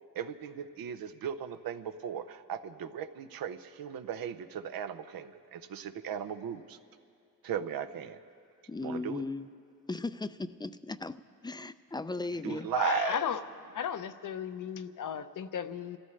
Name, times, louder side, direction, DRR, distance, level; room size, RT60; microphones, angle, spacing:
voice 1, 0.1-6.8 7.4-8.2 8.8-9.2 12.4-13.3, right 8 dB, 80° right, 10 dB, 0.7 m, -37 dB
voice 2, 8.7-9.5 9.9-12.7, left 3 dB, 15° left, 13 dB, 0.4 m, -37 dB
voice 3, 12.5-13.4 13.7-16.0, left 8 dB, 60° left, 10 dB, 0.7 m, -35 dB
29.0 x 14.5 x 3.2 m, 2.4 s
cardioid pair, 80°, 34 cm